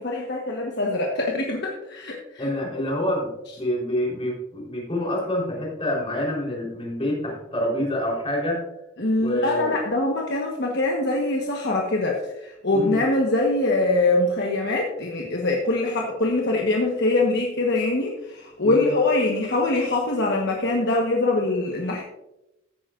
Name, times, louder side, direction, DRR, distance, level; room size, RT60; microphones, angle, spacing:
voice 1, 0.0-2.5 9.0-22.0, left 2 dB, 55° left, -1 dB, 1.3 m, -23 dB
voice 2, 2.4-8.7 9.2-9.8 12.7-13.0 18.6-18.9, left 1 dB, 30° left, -3 dB, 3.9 m, -27 dB
15.5 x 9.2 x 2.5 m, 0.92 s
head